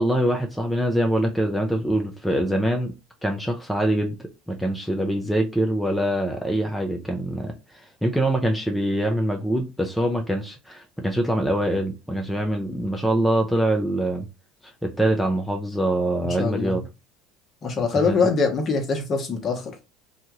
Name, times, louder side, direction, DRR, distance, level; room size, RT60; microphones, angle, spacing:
voice 1, 0.0-2.9 3.2-14.2 14.8-16.8 17.9-18.1, right 1 dB, 5° left, 0.6 m, -24 dB
voice 2, 16.2-16.8 17.6-19.7, left 4 dB, 40° left, 0.9 m, -23 dB
2.7 x 2.2 x 2.9 m
hypercardioid pair, 75°, 0 cm